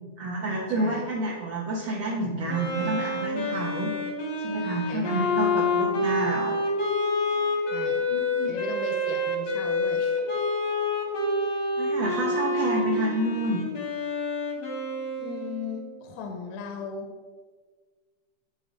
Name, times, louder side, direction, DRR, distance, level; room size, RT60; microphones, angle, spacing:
voice 1, 0.2-3.9 4.4-6.6 8.1-8.5 11.8-13.6, right 2 dB, 65° right, -4 dB, 1.3 m, -29 dB
voice 2, 0.8-1.1 4.9-5.4 7.7-10.2 15.2-17.1, left 5 dB, 80° left, 4 dB, 2.0 m, -37 dB
Wind instrument woodwind instrument, 2.5-15.9, left 2 dB, 55° left, 1.2 m, -28 dB
10.5 x 3.9 x 4.0 m, 1.5 s
omnidirectional pair, 3.6 m